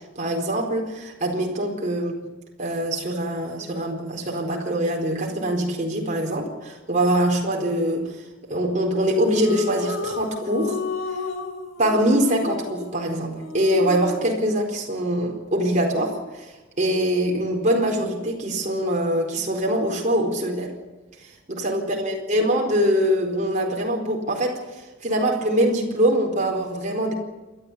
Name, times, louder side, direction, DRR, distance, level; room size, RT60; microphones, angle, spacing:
voice 1, 0.1-2.2 2.6-8.2 8.5-10.8 11.8-20.7 21.2-27.1, right 1 dB, 40° right, 0 dB, 4.4 m, -23 dB
sound 1, 9.0-14.4, left 3 dB, 75° left, 3.3 m, -32 dB
28.5 x 13.0 x 8.5 m, 1.2 s
head